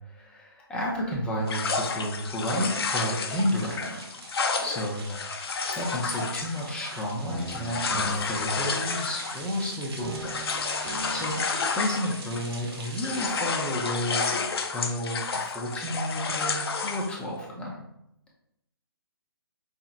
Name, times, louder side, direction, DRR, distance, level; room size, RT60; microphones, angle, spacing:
voice 1, 0.1-4.0 4.6-5.1 5.7-10.3 10.5-11.4 11.7-17.8, equal, 10° left, -3 dB, 0.5 m, -31 dB
sound 1, 1.5-12.6 12.8-17.2, left 4 dB, 70° left, 0.5 m, -31 dB
sound 2, 3.2-13.3, right 2 dB, 75° right, 1.1 m, -44 dB
sound 3, 7.3-9.6 10.0-12.2, equal, 45° right, 1.0 m, -39 dB
4.9 x 2.8 x 2.4 m, 0.81 s
hypercardioid pair, 145°, 13 cm